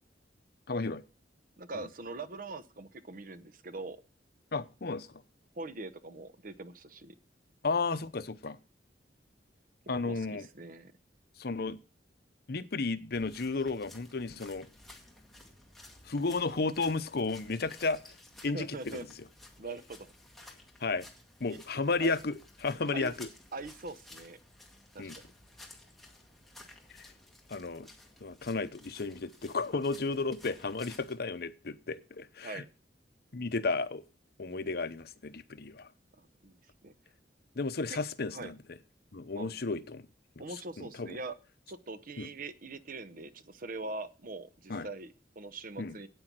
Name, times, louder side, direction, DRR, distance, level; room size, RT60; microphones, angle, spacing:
voice 1, 0.7-1.0 1.7-1.8 4.5-5.1 7.6-8.6 9.9-10.5 11.4-11.8 12.5-14.7 16.0-18.0 18.4-19.1 20.8-21.1 21.4-22.3 22.6-23.3 25.0-25.2 27.5-27.9 28.2-32.6 33.3-34.0 34.4-35.9 37.6-38.6 39.1-40.0 40.4-40.5 40.8-41.1 42.2-42.3 44.7-44.9 45.8-46.0, left 3 dB, 60° left, 0.8 m, -33 dB
voice 2, 1.6-4.0 5.5-7.2 10.0-10.9 18.5-19.1 19.6-20.1 21.5-21.6 22.0-22.1 22.9-23.1 23.5-24.4 24.9-25.3 32.4-32.6 36.2-36.9 37.9-38.0 38.3-38.5 39.3-39.6 40.4-41.3 41.7-46.1, right 3 dB, 55° right, 0.9 m, -42 dB
sound 1, 13.1-31.2, left 1 dB, ahead, 2.0 m, -55 dB
9.1 x 8.8 x 6.1 m
head